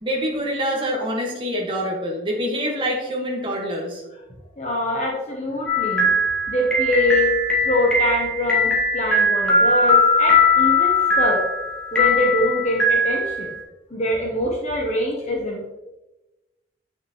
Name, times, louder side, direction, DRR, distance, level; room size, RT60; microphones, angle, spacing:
voice 1, 0.0-4.0, equal, 25° right, -2 dB, 1.7 m, -25 dB
voice 2, 4.6-6.1 6.5-7.3 7.6-11.4 11.9-13.5 13.9-15.7, left 1 dB, 40° left, -2 dB, 0.9 m, -24 dB
sound 1, 5.7-13.6, left 2 dB, 5° left, 1.7 m, -20 dB
8.7 x 6.2 x 3.1 m, 1.1 s
head